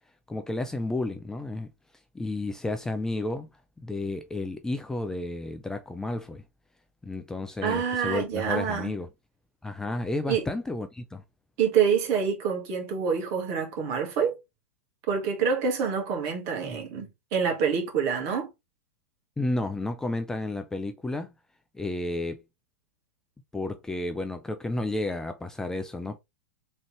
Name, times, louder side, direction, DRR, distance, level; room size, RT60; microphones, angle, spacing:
voice 1, 0.3-1.7 2.1-3.5 3.8-6.4 7.0-9.1 9.6-11.2 16.6-16.8 19.4-21.3 21.7-22.4 23.5-26.2, left 2 dB, 5° left, 0.4 m, -32 dB
voice 2, 7.6-8.9 10.3-10.4 11.6-14.3 15.1-18.5, right 7 dB, 45° right, 1.7 m, -26 dB
3.7 x 3.2 x 3.3 m
figure-of-eight pair, 95°, 7 cm